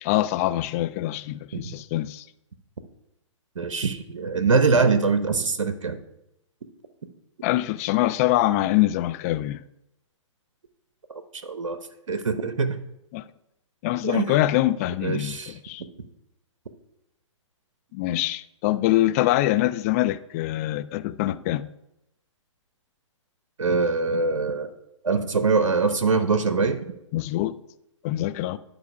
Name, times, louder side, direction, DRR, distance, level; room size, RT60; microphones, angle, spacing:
voice 1, 0.0-2.2 7.4-9.6 13.1-13.2 13.8-15.8 17.9-21.7 27.1-27.6 28.0-28.6, left 15 dB, 30° left, 0.4 m, -24 dB
voice 2, 3.6-6.0 11.1-11.8 12.1-12.8 14.0-14.4 15.0-15.5 23.6-24.7 25.0-26.8, right 4 dB, 85° right, 0.8 m, -23 dB
10.5 x 4.8 x 5.0 m
hypercardioid pair, 130°, 16 cm